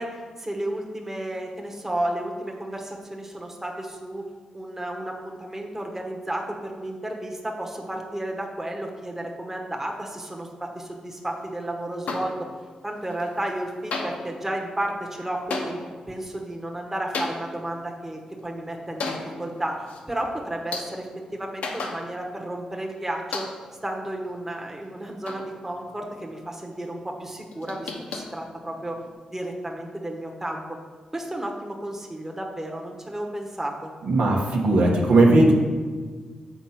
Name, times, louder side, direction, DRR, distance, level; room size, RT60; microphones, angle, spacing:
voice 1, 0.0-4.2 4.5-12.3 12.8-15.7 16.1-23.4 23.8-29.0 29.3-30.6 31.1-33.9, right 1 dB, 15° right, 0 dB, 1.1 m, -32 dB
sound 1, 12.1-12.8 13.1-13.6 13.9-22.5 22.8-22.9 23.3-23.9 24.3-26.1 26.4-26.8 27.2-29.1, left 3 dB, 80° left, 0.9 m, -36 dB
voice 2, 34.0-35.5, right 2 dB, 80° right, -1 dB, 1.2 m, -18 dB
7.2 x 4.1 x 5.8 m, 1.5 s
cardioid pair, 75°, 2 cm